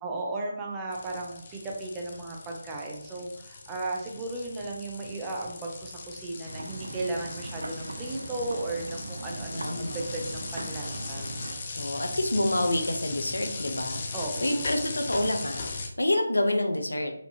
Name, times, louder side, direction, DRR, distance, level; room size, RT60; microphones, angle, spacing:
voice 1, 0.0-11.3 14.1-14.7, right 2 dB, 15° right, 0 dB, 0.5 m, -35 dB
sound 1, 0.9-15.9, left 3 dB, 35° left, 0.5 m, -39 dB
sound 2, 6.4-11.6, right 2 dB, 65° right, 0.5 m, -39 dB
voice 2, 9.5-10.1 11.8-14.0 14.4-17.1, left 1 dB, 80° left, 5 dB, 0.6 m, -28 dB
4.3 x 2.7 x 2.7 m, 0.69 s
figure-of-eight pair, 160°, 0 cm